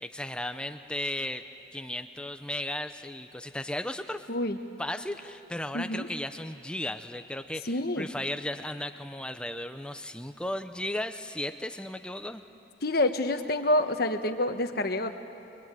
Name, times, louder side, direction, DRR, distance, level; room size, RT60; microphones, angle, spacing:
voice 1, 0.0-1.4 1.7-4.3 4.8-12.4, left 1 dB, 5° left, 8 dB, 0.7 m, -35 dB
voice 2, 5.7-6.1 7.6-8.1 12.8-15.1, left 1 dB, 50° left, 7 dB, 1.3 m, -27 dB
27.0 x 22.5 x 9.2 m, 2.7 s
head